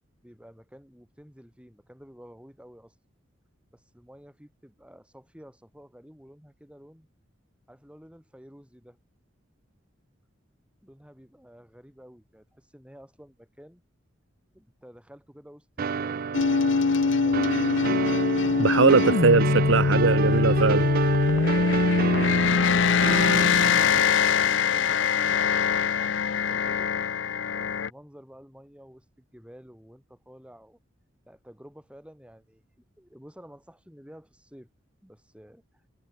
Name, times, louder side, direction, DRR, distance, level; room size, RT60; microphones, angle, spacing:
voice 1, 0.2-2.9 3.7-7.1 7.7-9.0 10.8-13.8 14.5-16.3 21.3-25.6 25.9-26.9 27.5-30.8 31.3-32.6 33.0-34.7 35.0-35.8, equal, 5° right, 6.0 m, -51 dB
sound 1, 15.8-24.1, right 5 dB, 50° right, 0.5 m, -29 dB
sound 2, 16.3-27.9, left 5 dB, 70° left, 0.6 m, -23 dB
voice 2, 18.6-20.9, right 4 dB, 85° right, 0.8 m, -20 dB
head